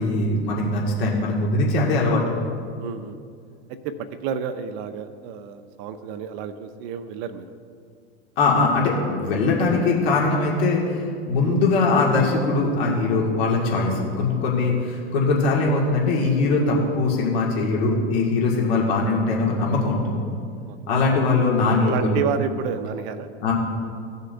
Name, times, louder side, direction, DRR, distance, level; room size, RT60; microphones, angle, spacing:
voice 1, 0.0-2.2 8.4-20.2 20.9-22.2 23.4-23.5, left 3 dB, 65° left, -3 dB, 2.0 m, -21 dB
voice 2, 2.8-3.2 3.7-3.9 4.2-7.5 11.4-11.6 13.7-13.8 14.6-14.8 18.6-18.7 20.6-21.1 21.8-23.3, right 7 dB, 45° right, 9 dB, 0.7 m, -31 dB
16.5 x 6.6 x 2.6 m, 2.3 s
hypercardioid pair, 95°, 34 cm